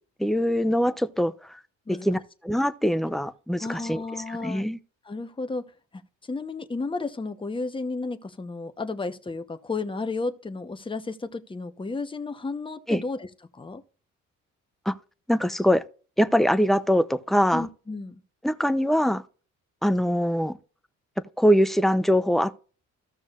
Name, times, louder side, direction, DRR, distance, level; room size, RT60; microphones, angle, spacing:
voice 1, 0.2-1.6 1.9-4.0 4.3-4.8 12.9-13.0 14.9-15.0 15.3-15.8 16.2-17.7 18.4-19.2 19.8-20.6 21.4-22.6, equal, ahead, 0.6 m, -23 dB
voice 2, 3.6-4.6 5.1-5.7 6.2-13.3 13.5-13.8 17.5-18.2, left 3 dB, 15° left, 1.0 m, -32 dB
15.0 x 6.2 x 2.5 m
cardioid pair, 90°, 30 cm